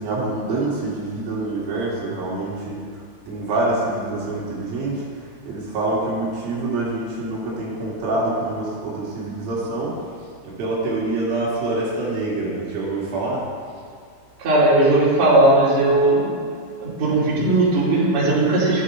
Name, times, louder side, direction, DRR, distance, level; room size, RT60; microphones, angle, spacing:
voice 1, 0.0-10.1 10.4-13.5, right 2 dB, 55° right, -6 dB, 3.4 m, -26 dB
voice 2, 14.4-16.3 16.8-18.8, right 2 dB, 35° right, -9 dB, 2.9 m, -17 dB
11.0 x 9.8 x 3.9 m, 2.2 s
omnidirectional pair, 6.0 m